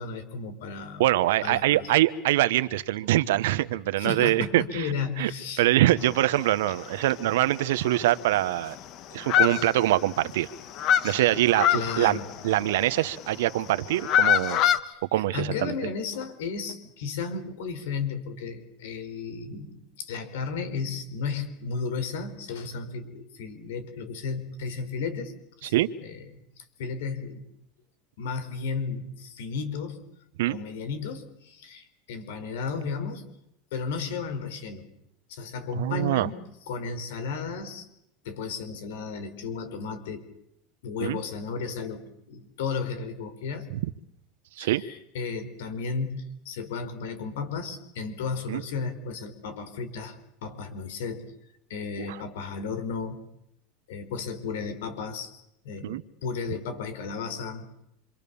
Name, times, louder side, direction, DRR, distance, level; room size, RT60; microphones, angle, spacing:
voice 1, 0.0-1.0 1.4-1.9 4.0-5.6 11.7-12.3 14.8-25.3 25.6-26.2 26.6-27.4 28.2-30.1 30.5-33.3 33.7-34.9 35.3-36.4 36.7-37.9 38.2-40.3 40.8-43.7 44.6-51.3 51.7-53.2 53.9-57.7, left 5 dB, 85° left, 11 dB, 4.6 m, -34 dB
voice 2, 1.0-4.8 5.2-5.3 5.6-8.8 9.1-10.5 11.0-12.2 12.4-14.6 15.1-15.7 25.6-25.9 30.4-30.6 35.8-36.3 41.0-41.2 43.7-43.8 44.6-44.8 48.5-48.6 52.0-52.2 55.8-56.0, right 15 dB, 80° right, 15 dB, 1.2 m, -24 dB
sound 1, 6.0-6.7 7.0-7.1 7.5-7.6 7.8-8.8 9.2-10.3 10.5-13.1 13.7-14.8, left 10 dB, 50° left, 1.6 m, -24 dB
28.0 x 25.5 x 7.1 m, 0.77 s
supercardioid pair, 115°, 0 cm